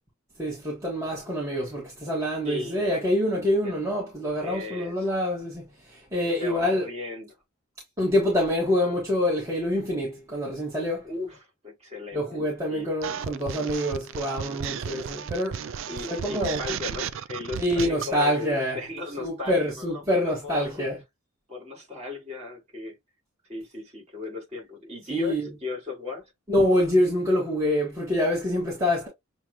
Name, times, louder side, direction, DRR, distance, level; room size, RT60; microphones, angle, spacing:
voice 1, 0.4-6.9 8.0-11.1 12.1-15.6 16.1-16.6 17.6-18.8 19.2-21.0 25.1-25.4 26.5-29.1, left 1 dB, 15° right, 1.5 m, -26 dB
voice 2, 2.4-2.9 3.6-3.7 4.4-5.1 6.4-7.3 11.0-11.4 11.6-12.4 12.7-12.9 15.9-20.8 21.5-23.0 23.5-26.3, left 3 dB, 30° right, 3.1 m, -36 dB
sound 1, 13.0-18.2, right 8 dB, 70° right, 0.4 m, -34 dB
7.0 x 2.4 x 2.8 m
head